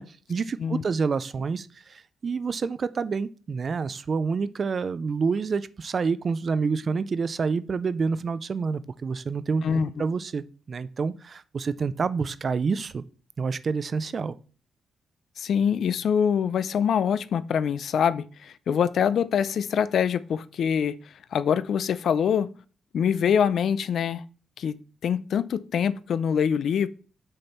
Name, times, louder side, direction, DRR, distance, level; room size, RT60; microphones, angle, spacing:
voice 1, 0.0-13.0 13.4-14.4, right 5 dB, 35° right, 16 dB, 0.4 m, -28 dB
voice 2, 15.4-21.0 21.3-22.5 22.9-24.2 24.6-24.8 25.0-26.9, left 7 dB, 60° left, 16 dB, 0.4 m, -24 dB
6.5 x 6.1 x 4.2 m, 0.39 s
wide cardioid pair, 175°, 0 cm